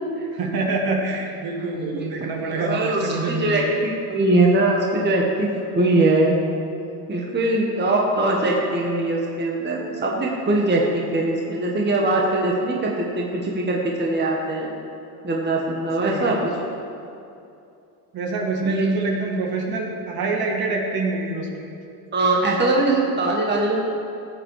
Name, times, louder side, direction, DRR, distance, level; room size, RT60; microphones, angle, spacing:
voice 1, 0.3-3.6 16.0-16.3 18.1-21.6, right 3 dB, 45° right, 0 dB, 2.3 m, -25 dB
voice 2, 1.8-6.4 7.1-14.7 15.2-16.4 18.6-18.7 22.1-23.8, right 2 dB, 20° right, -2 dB, 1.7 m, -22 dB
16.0 x 8.8 x 5.0 m, 2.6 s
supercardioid pair, 100°, 48 cm